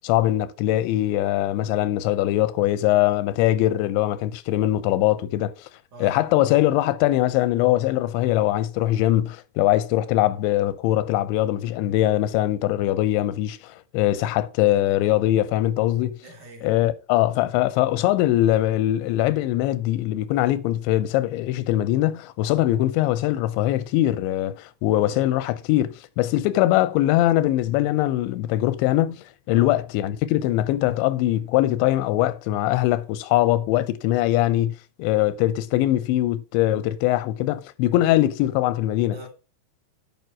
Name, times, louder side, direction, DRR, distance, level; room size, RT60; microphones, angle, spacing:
voice 1, 0.0-5.5 6.0-16.2 16.6-39.1, left 14 dB, 85° left, 3.0 m, -22 dB
voice 2, 5.9-6.2 11.7-12.2 16.2-16.7 25.0-25.3 29.5-29.7 38.9-39.3, right 1 dB, 45° right, 3.4 m, -44 dB
11.0 x 5.9 x 4.5 m
omnidirectional pair, 5.2 m